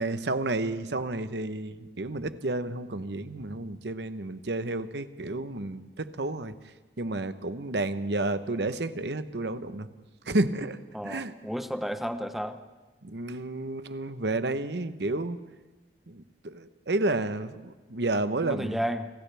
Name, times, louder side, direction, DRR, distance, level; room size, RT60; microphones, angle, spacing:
voice 1, 0.0-6.5 7.0-9.9 10.3-11.3 13.0-15.4 16.1-18.8, right 2 dB, 70° right, 11 dB, 1.0 m, -31 dB
voice 2, 10.9-12.6 18.4-19.1, equal, ahead, 8 dB, 1.0 m, -32 dB
30.0 x 26.5 x 3.5 m, 1.2 s
head